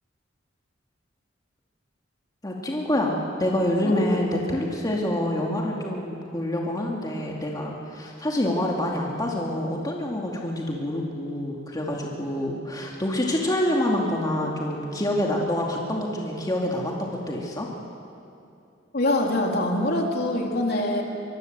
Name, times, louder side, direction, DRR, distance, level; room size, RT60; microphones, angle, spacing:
voice 1, 2.4-17.7, left 1 dB, 20° left, -1 dB, 2.4 m, -27 dB
voice 2, 18.9-21.0, left 1 dB, 55° left, 1 dB, 3.3 m, -24 dB
24.0 x 21.5 x 8.0 m, 2.6 s
head